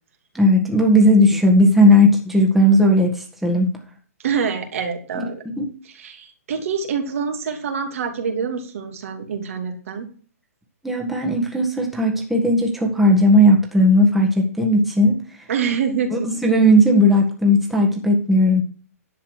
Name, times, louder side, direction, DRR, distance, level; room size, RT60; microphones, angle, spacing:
voice 1, 0.3-3.7 5.1-5.7 10.8-15.2 16.1-18.6, equal, ahead, 0 dB, 1.7 m, -16 dB
voice 2, 4.2-5.4 5.9-10.1 15.5-16.3, right 6 dB, 60° right, 4 dB, 2.8 m, -26 dB
11.0 x 7.3 x 4.9 m, 0.40 s
hypercardioid pair, 150°, 8 cm